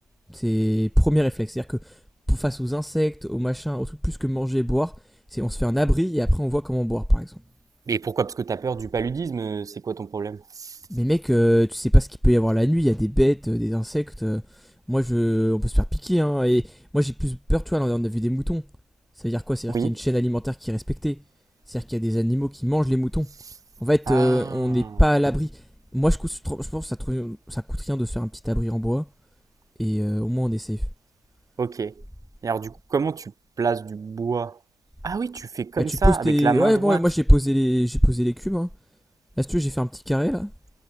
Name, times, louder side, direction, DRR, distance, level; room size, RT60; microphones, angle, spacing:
voice 1, 0.3-1.8 2.3-4.9 5.3-7.4 10.9-14.4 14.9-18.6 19.2-21.2 21.7-23.3 23.8-25.5 25.9-29.1 29.8-30.8 36.0-38.7 39.4-40.5, equal, ahead, 5.5 m, -22 dB
voice 2, 7.9-10.8 19.7-20.0 24.1-25.0 31.6-31.9 32.4-33.3 33.6-34.6 35.0-37.0, right 5 dB, 35° right, 6.9 m, -28 dB
hypercardioid pair, 60°, 11 cm